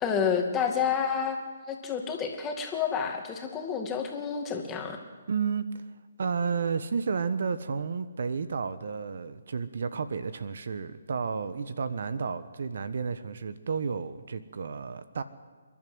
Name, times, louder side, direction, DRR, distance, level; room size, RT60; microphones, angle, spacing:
voice 1, 0.0-5.0, left 7 dB, 15° left, 3 dB, 2.4 m, -29 dB
voice 2, 5.3-5.6 6.2-15.2, right 5 dB, 65° right, 13 dB, 1.2 m, -31 dB
29.0 x 11.5 x 8.0 m, 1.4 s
hypercardioid pair, 150°, 0 cm